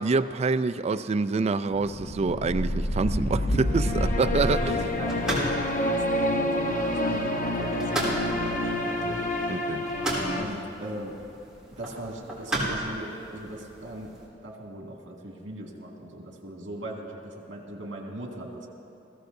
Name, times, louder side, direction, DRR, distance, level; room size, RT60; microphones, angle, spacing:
voice 1, 0.0-4.6 9.5-9.8, right 4 dB, 35° right, 12 dB, 0.3 m, -26 dB
sound 1, 1.7-10.4, left 1 dB, 45° left, 0.9 m, -27 dB
sound 2, 4.3-14.3, right 1 dB, 5° right, 3.6 m, -36 dB
voice 2, 4.4-9.2 10.3-11.1 11.8-14.1 14.4-18.7, right 1 dB, 75° right, 0 dB, 2.0 m, -39 dB
21.5 x 16.0 x 2.7 m, 2.9 s
head